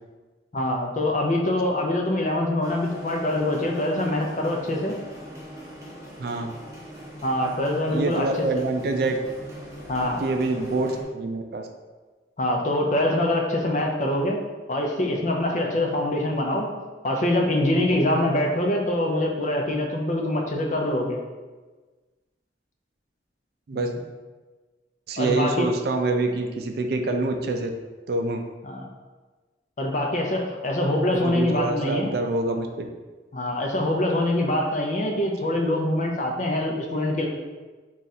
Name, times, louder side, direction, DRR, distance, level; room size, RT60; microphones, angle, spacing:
voice 1, 0.5-4.9 7.2-8.5 9.9-10.2 12.4-14.4 14.7-16.7 17.0-21.2 23.7-23.9 25.2-25.7 26.1-26.4 27.0-27.2 28.6-28.8 29.8-32.1 33.3-37.3, left 1 dB, 40° left, 1 dB, 0.5 m, -24 dB
sound 1, 2.6-11.0, equal, 15° right, 0.7 m, -41 dB
voice 2, 6.2-6.5 7.9-9.2 10.2-11.7 23.7-23.9 25.1-27.7 28.1-28.4 31.1-32.9, right 2 dB, 60° right, 4 dB, 0.4 m, -26 dB
3.9 x 2.4 x 4.0 m, 1.3 s
head